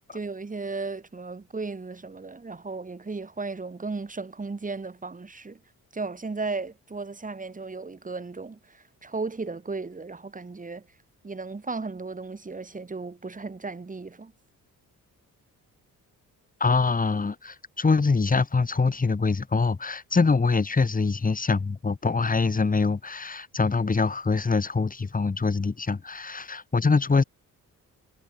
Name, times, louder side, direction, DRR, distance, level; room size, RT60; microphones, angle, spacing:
voice 1, 0.1-5.6 5.9-10.9 11.2-14.3, right 3 dB, 25° right, 6.3 m, -35 dB
voice 2, 16.6-27.2, left 4 dB, 25° left, 2.5 m, -24 dB
wide cardioid pair, 155°, 34 cm